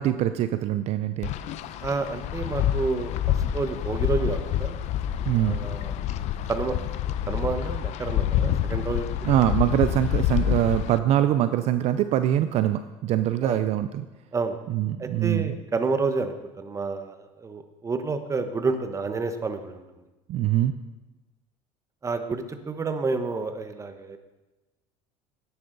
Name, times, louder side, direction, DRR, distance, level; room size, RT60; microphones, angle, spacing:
voice 1, 0.0-1.3 3.4-3.5 5.3-5.6 9.2-14.1 14.7-15.6 20.3-20.7, right 12 dB, 55° right, 11 dB, 0.5 m, -23 dB
Wind, 1.2-11.0, left 10 dB, 60° left, 0.6 m, -27 dB
voice 2, 1.8-4.8 5.4-5.9 6.5-6.8 7.3-9.1 13.4-13.6 14.3-14.6 15.0-19.8 22.0-24.2, right 4 dB, 25° right, 8 dB, 1.1 m, -29 dB
10.5 x 10.5 x 4.0 m, 1.1 s
supercardioid pair, 95°, 13 cm